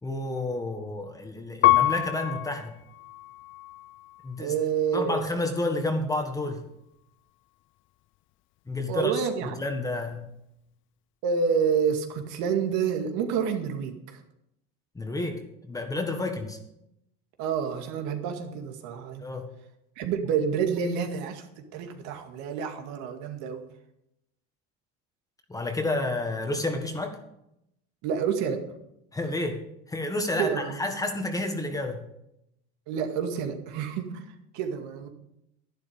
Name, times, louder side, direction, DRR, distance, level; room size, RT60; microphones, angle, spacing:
voice 1, 0.0-2.7 4.2-4.5 4.9-6.6 8.7-9.1 9.4-10.2 14.9-16.6 19.2-19.5 25.5-27.2 29.1-29.6 29.9-32.0, left 2 dB, 10° left, 5 dB, 1.6 m, -30 dB
Piano, 1.6-4.4 5.0-5.7, left 15 dB, 40° left, 0.5 m, -27 dB
voice 2, 4.4-5.2 8.9-9.5 11.2-14.2 17.4-19.3 20.0-23.6 28.0-28.6 30.4-30.7 32.9-35.1, right 7 dB, 70° right, 5 dB, 2.2 m, -28 dB
12.0 x 11.5 x 5.3 m, 0.81 s
cardioid pair, 135°, 31 cm